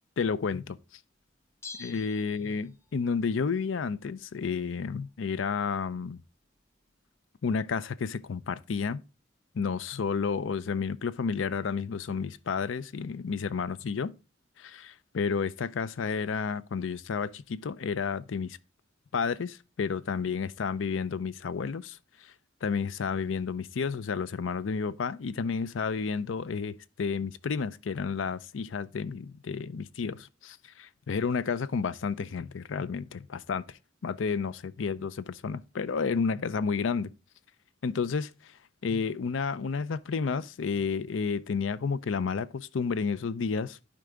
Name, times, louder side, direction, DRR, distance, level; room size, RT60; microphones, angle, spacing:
voice 1, 0.2-0.8 1.8-6.2 7.4-9.0 9.6-14.1 14.6-18.6 19.1-22.0 22.6-33.6 34.0-37.1 37.8-38.3 38.8-43.8, left 5 dB, 80° left, 0.5 m, -31 dB
Bell, 1.6-3.0 3.3-3.4, left 4 dB, 15° left, 0.5 m, -46 dB
11.0 x 4.8 x 3.6 m
head